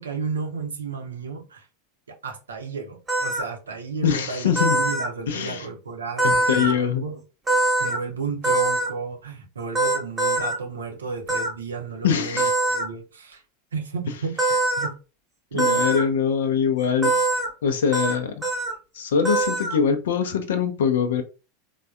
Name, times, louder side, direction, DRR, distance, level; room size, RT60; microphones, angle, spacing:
voice 1, 0.0-1.7 2.2-7.2 7.8-13.4 13.7-14.4 14.8-14.9 15.5-15.8, right 5 dB, 80° right, 0.5 m, -33 dB
sound 1, 3.1-3.4 4.5-5.1 6.2-6.7 7.5-8.0 8.4-8.9 9.7-10.5 11.3-11.5 12.4-12.8 14.4-14.9 15.6-16.0 17.0-17.5 17.9-18.1 18.4-18.7 19.2-19.8, right 2 dB, 20° right, 0.9 m, -22 dB
voice 2, 4.0-4.8 5.3-5.7 6.2-7.0 12.0-12.6 15.5-17.2 17.6-18.4 18.9-21.2, left 7 dB, 70° left, 0.4 m, -23 dB
3.3 x 2.1 x 2.3 m
figure-of-eight pair, 85°, 0 cm